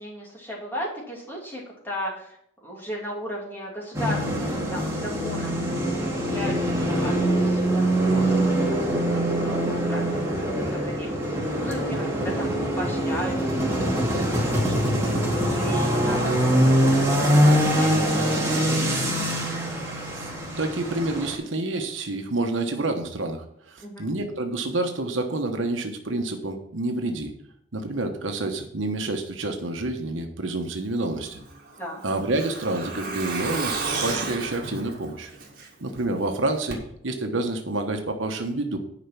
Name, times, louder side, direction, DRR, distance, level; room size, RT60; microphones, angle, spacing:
voice 1, 0.0-8.3 8.7-8.9 9.2-16.5 17.0-18.8 23.8-24.0 31.8-32.0, equal, 10° left, -3 dB, 2.7 m, -36 dB
sound 1, 3.9-21.3, equal, 15° right, 2.1 m, -23 dB
voice 2, 20.6-27.3 27.7-31.4 32.0-33.7 34.0-35.3 35.8-38.8, right 2 dB, 75° right, 5 dB, 1.1 m, -28 dB
Truck, 31.3-36.0 36.3-36.4 36.7-36.8, right 3 dB, 50° right, 2.1 m, -32 dB
10.0 x 5.1 x 5.9 m, 0.71 s
head